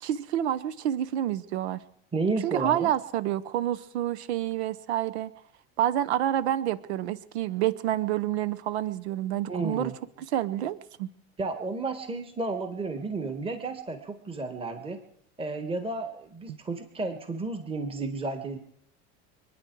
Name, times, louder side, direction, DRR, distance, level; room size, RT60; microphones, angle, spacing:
voice 1, 0.0-1.8 2.4-5.3 5.8-9.9 10.3-11.1 16.5-16.6, right 12 dB, 85° right, 15 dB, 0.9 m, -28 dB
voice 2, 2.1-2.9 9.5-9.9 11.4-15.0 15.4-18.6, right 3 dB, 15° right, 7 dB, 1.5 m, -32 dB
28.0 x 9.5 x 4.6 m, 0.73 s
supercardioid pair, 115°, 32 cm